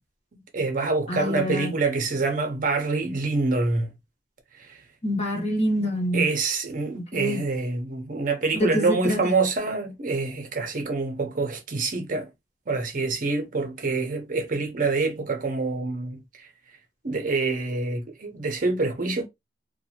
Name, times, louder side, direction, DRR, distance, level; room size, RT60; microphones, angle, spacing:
voice 1, 0.5-3.9 4.7-4.8 6.1-12.3 12.7-16.5 17.0-19.3, right 3 dB, 45° right, 0.6 m, -26 dB
voice 2, 1.1-1.7 5.0-6.3 6.9-7.4 8.5-9.3, equal, 35° left, 1.0 m, -26 dB
2.6 x 2.2 x 2.7 m
head